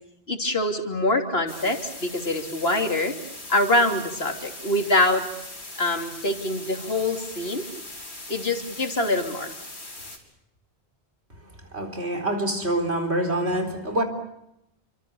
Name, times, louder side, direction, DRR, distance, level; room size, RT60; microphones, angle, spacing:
voice 1, 0.3-3.1 3.5-5.3 5.8-7.6 8.3-9.5, left 1 dB, 65° left, 3.3 m, -24 dB
sound 1, 1.5-10.2, left 2 dB, 90° left, 4.7 m, -40 dB
voice 2, 11.7-14.0, right 1 dB, 85° right, 4.4 m, -26 dB
29.5 x 25.0 x 7.0 m
omnidirectional pair, 1.1 m